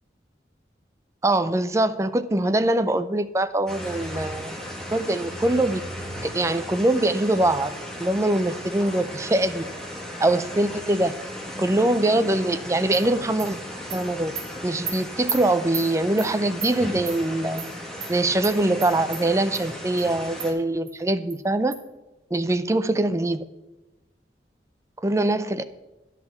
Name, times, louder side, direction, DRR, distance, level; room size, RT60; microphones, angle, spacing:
voice 1, 1.2-4.6 4.9-5.8 6.2-7.7 8.0-9.6 10.2-11.1 11.6-13.6 13.9-14.3 14.6-17.7 18.1-21.7 22.3-23.4 25.0-25.6, right 1 dB, 15° right, 12 dB, 0.4 m, -23 dB
sound 1, 3.7-20.5, equal, 5° left, 1.6 m, -36 dB
Animal, 12.9-13.0 13.4-13.5 13.9-14.0 14.4-14.5 14.9-15.0 15.3-15.4 15.7-15.9 16.2-16.3 16.6-16.7 17.1-17.2 17.6-17.7 18.0-18.1 18.4-18.5 18.8-19.2 19.5-19.6 20.0-20.1 20.4-20.5 20.9-21.0 21.3-21.4 21.7-21.8, right 6 dB, 50° right, 2.2 m, -32 dB
10.5 x 5.8 x 7.0 m, 1.1 s
head